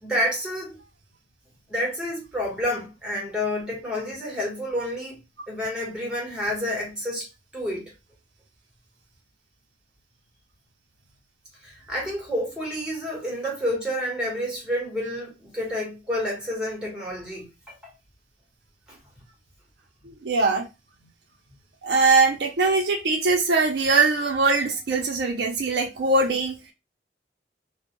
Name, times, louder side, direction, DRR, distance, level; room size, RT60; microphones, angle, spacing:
voice 1, 0.0-0.8 1.7-5.2 5.5-7.3 7.5-7.9 11.6-17.8, equal, 5° right, 1.0 m, -29 dB
voice 2, 20.0-20.7 21.8-26.6, right 3 dB, 65° right, 0.5 m, -21 dB
2.1 x 2.1 x 2.8 m
head